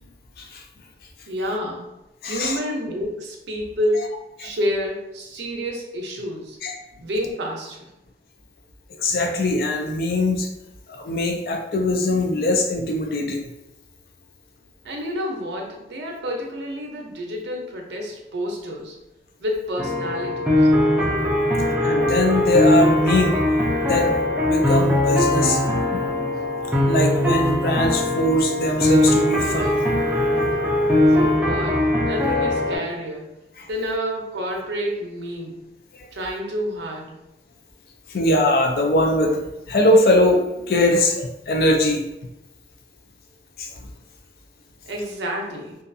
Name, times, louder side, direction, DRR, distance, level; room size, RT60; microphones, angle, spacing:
voice 1, 1.3-1.9 2.3-6.6 7.0-7.9 14.8-19.0 19.4-20.7 31.1-33.3 33.7-35.7 36.1-37.2 44.9-45.8, equal, 85° right, 0 dB, 0.6 m, -29 dB
voice 2, 2.2-2.5 6.6-6.7 9.0-10.5 10.9-13.4 21.8-23.3 23.9-24.1 24.4-26.1 26.8-29.8 38.1-42.0 43.6-43.7, left 1 dB, 55° left, 2 dB, 0.4 m, -21 dB
sound 1, 19.8-32.8, left 1 dB, 5° right, 0.4 m, -20 dB
2.5 x 2.3 x 2.6 m, 0.93 s
head